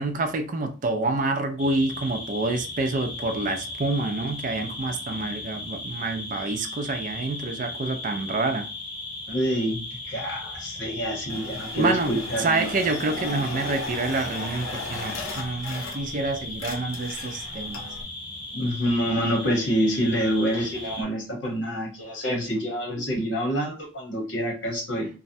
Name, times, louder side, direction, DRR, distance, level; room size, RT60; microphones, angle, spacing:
voice 1, 0.0-8.7 11.7-17.8, right 2 dB, 40° right, 0.4 m, -27 dB
sound 1, 1.6-21.0, left 2 dB, 25° left, 0.5 m, -37 dB
voice 2, 9.3-12.7 18.5-25.1, equal, 60° left, 1.1 m, -27 dB
sound 2, 11.3-16.2 16.5-18.0, left 3 dB, 85° left, 0.6 m, -37 dB
3.1 x 2.1 x 2.6 m
head